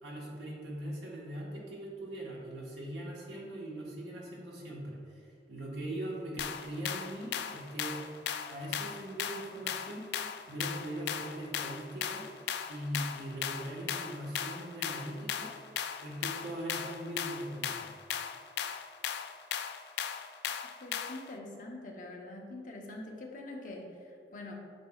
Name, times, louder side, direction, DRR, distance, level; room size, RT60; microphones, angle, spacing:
voice 1, 0.0-8.0 8.5-10.0 10.5-12.3 12.7-15.5 16.0-17.9, right 1 dB, 85° right, -3 dB, 1.4 m, -40 dB
sound 1, 6.4-21.3, left 8 dB, 70° left, 0.3 m, -37 dB
voice 2, 20.8-24.5, left 2 dB, 45° left, -1 dB, 0.8 m, -44 dB
8.0 x 5.4 x 2.4 m, 2.4 s
head